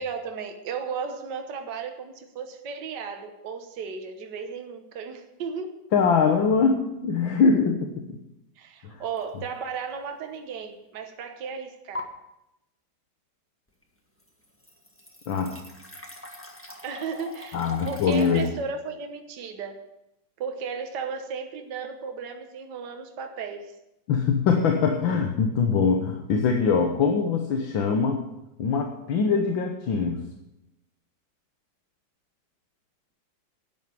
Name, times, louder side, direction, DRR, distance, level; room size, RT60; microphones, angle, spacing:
voice 1, 0.0-5.8 8.6-12.1 16.8-19.8 20.4-23.7, right 5 dB, 65° right, 5 dB, 1.7 m, -35 dB
voice 2, 5.9-8.2 8.8-9.0 15.3-15.6 17.5-18.5 24.1-28.2 28.6-30.2, left 5 dB, 85° left, 4 dB, 1.9 m, -23 dB
sound 1, 9.2-9.4 9.9-10.0 11.9-12.0 13.8-13.9 14.2-18.5, left 2 dB, 5° left, 1.4 m, -41 dB
11.0 x 9.6 x 7.8 m, 0.88 s
omnidirectional pair, 2.1 m